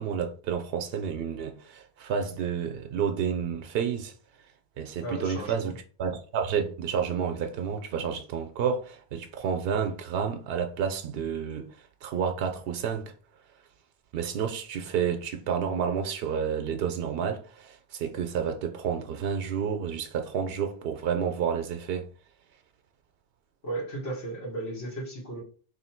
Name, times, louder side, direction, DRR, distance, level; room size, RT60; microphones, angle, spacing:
voice 1, 0.0-4.1 4.8-11.7 12.0-13.1 14.1-22.1, right 7 dB, 70° right, 0.8 m, -30 dB
voice 2, 5.0-5.7 23.6-25.4, right 2 dB, 80° left, 1.7 m, -35 dB
3.1 x 2.6 x 4.3 m
omnidirectional pair, 1.0 m